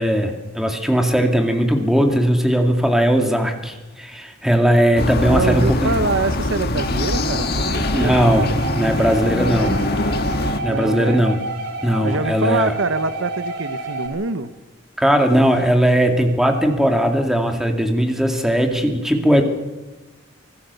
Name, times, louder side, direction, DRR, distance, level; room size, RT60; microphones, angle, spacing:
voice 1, 0.0-5.9 7.9-9.8 10.4-11.4 11.8-12.7 15.0-19.4, equal, ahead, 4 dB, 2.3 m, -18 dB
sound 1, 5.0-10.6, left 2 dB, 55° left, 1.6 m, -23 dB
voice 2, 5.3-8.7 10.6-11.2 12.0-14.5, right 3 dB, 90° right, 12 dB, 1.2 m, -25 dB
sound 2, 6.8-14.1, right 2 dB, 60° right, 4.0 m, -30 dB
25.5 x 19.0 x 7.0 m, 1.2 s
head